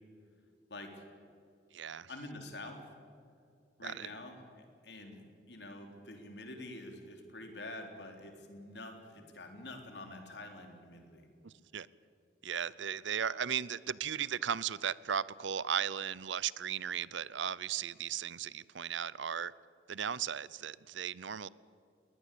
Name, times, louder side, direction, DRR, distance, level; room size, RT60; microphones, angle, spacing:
voice 1, 0.7-1.0 2.1-2.8 3.8-5.2 5.5-11.2, left 2 dB, 60° left, 4 dB, 3.6 m, -47 dB
voice 2, 1.7-2.1 3.8-4.1 11.4-11.9 12.4-19.5 19.9-21.5, right 8 dB, 75° right, 20 dB, 0.6 m, -36 dB
21.5 x 19.5 x 8.5 m, 2.4 s
head